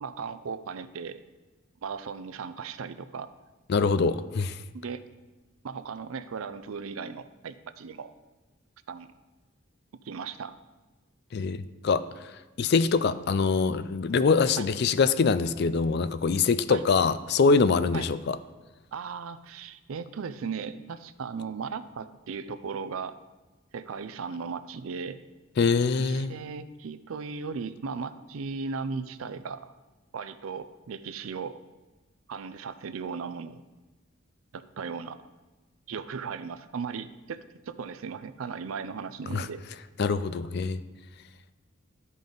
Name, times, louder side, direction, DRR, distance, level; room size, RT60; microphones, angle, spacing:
voice 1, 0.0-1.2 1.8-3.3 4.7-5.0 5.6-8.1 8.9-9.1 10.0-10.6 14.6-14.7 16.7-16.8 17.9-18.1 18.9-23.2 23.7-25.2 26.0-29.7 30.1-31.6 32.3-33.6 34.5-35.2 35.9-39.6, right 5 dB, 85° right, 13 dB, 0.5 m, -37 dB
voice 2, 3.7-4.6 11.3-12.0 12.6-18.4 25.6-26.3 39.3-39.5 40.0-40.8, left 4 dB, 50° left, 14 dB, 0.3 m, -24 dB
12.0 x 5.3 x 3.9 m, 1.2 s
head